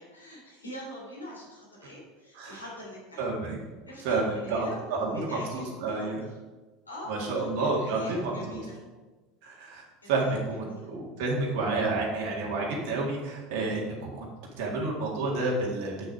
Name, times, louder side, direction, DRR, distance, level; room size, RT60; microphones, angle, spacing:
voice 1, 0.0-3.3 3.9-6.4 6.9-8.8 10.1-10.9, equal, 90° left, -4 dB, 2.8 m, -43 dB
voice 2, 3.2-3.6 4.0-4.2 4.5-6.2 7.1-8.6 9.4-14.3 14.6-16.1, right 3 dB, 60° right, -3 dB, 1.9 m, -30 dB
7.7 x 6.3 x 4.8 m, 1.2 s
figure-of-eight pair, 75°, 0 cm